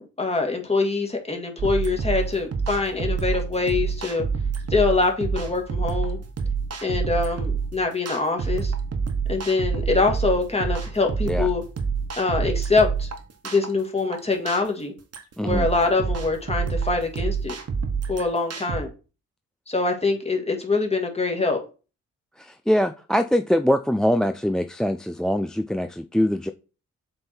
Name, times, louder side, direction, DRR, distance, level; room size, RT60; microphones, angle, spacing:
voice 1, 0.2-4.3 4.7-6.2 6.8-8.7 9.3-11.6 12.2-13.1 13.4-14.9 15.4-17.5 18.1-18.9 19.7-21.6, left 3 dB, 20° left, 1.8 m, -24 dB
sound 1, 1.6-18.8, right 5 dB, 55° right, 1.3 m, -27 dB
voice 2, 15.4-15.7 22.4-26.5, equal, ahead, 0.3 m, -23 dB
7.7 x 3.6 x 4.4 m
cardioid pair, 85°, 30 cm